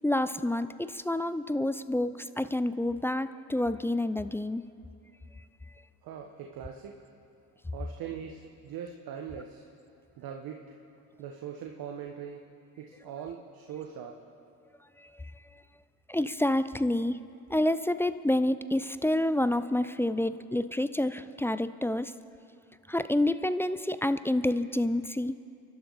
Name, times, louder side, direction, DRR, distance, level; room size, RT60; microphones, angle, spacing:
voice 1, 0.0-4.6 15.0-15.2 16.1-22.1 22.9-25.3, left 1 dB, 5° left, 13 dB, 0.4 m, -28 dB
voice 2, 6.0-7.1 7.7-9.7 10.2-10.8 11.2-12.4 12.8-14.2, right 8 dB, 60° right, 2 dB, 1.4 m, -41 dB
29.0 x 12.0 x 4.1 m, 2.5 s
hypercardioid pair, 65°, 41 cm